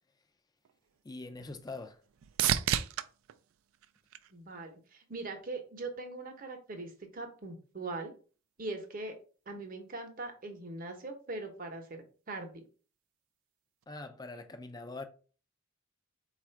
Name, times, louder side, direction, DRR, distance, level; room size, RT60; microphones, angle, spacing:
sound 1, 0.6-4.9 5.4-6.0 13.8-13.9, right 10 dB, 80° right, 0.3 m, -35 dB
voice 1, 1.0-2.0 13.9-15.0, left 3 dB, 20° left, 0.4 m, -43 dB
voice 2, 4.3-8.1 8.6-9.2 9.5-12.6, right 2 dB, 45° right, 0.8 m, -41 dB
4.2 x 2.4 x 4.3 m
head